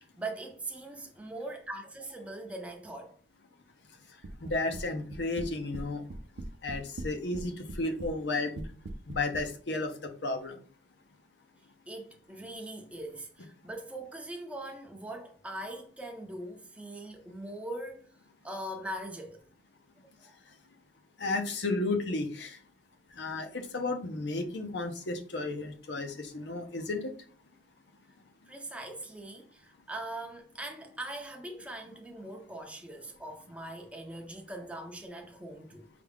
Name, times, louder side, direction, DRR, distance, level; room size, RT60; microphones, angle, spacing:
voice 1, 0.0-3.2 11.9-18.1 18.4-19.4 20.2-20.3 28.5-35.9, right 1 dB, 5° right, 0.5 m, -41 dB
sound 1, 4.2-4.8 5.1-5.8 6.1-7.4 7.7-8.1 8.6-9.5, right 2 dB, 80° right, 0.5 m, -39 dB
voice 2, 4.4-6.0 6.6-8.6 9.1-9.9 10.2-10.6 21.2-22.6 23.2-27.1, left 2 dB, 75° left, 0.7 m, -33 dB
4.9 x 2.3 x 3.4 m
head